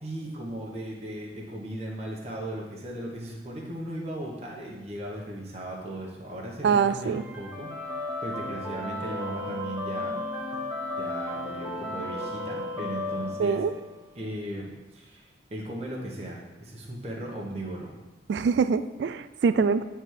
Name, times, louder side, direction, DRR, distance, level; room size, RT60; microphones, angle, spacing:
voice 1, 0.0-7.7 8.2-10.2 10.5-10.6 11.0-13.6 14.1-17.9, right 1 dB, 35° right, -3 dB, 1.0 m, -37 dB
voice 2, 6.6-7.2 13.4-13.7 18.3-19.8, right 5 dB, 70° right, 13 dB, 0.3 m, -24 dB
sound 1, 7.1-14.1, left 1 dB, 10° right, 1.6 m, -34 dB
9.6 x 3.5 x 4.6 m, 1.1 s
head